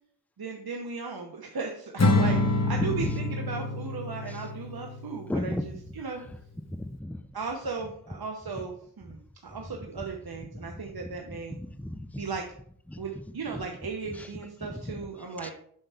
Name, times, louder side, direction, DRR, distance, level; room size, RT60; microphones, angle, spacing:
voice 1, 0.4-6.2 7.3-11.6 12.2-12.5 13.0-15.5, right 4 dB, 70° right, 1 dB, 1.0 m, -36 dB
Acoustic guitar / Strum, 2.0-5.3, left 2 dB, 40° left, 1.2 m, -26 dB
voice 2, 2.8-3.1 5.3-5.6 6.7-7.2 11.6-12.2 12.9-13.0 14.8-14.9 15.4-15.5, left 1 dB, 5° left, 8 dB, 0.6 m, -33 dB
7.7 x 5.6 x 3.5 m, 0.62 s
wide cardioid pair, 50°, 39 cm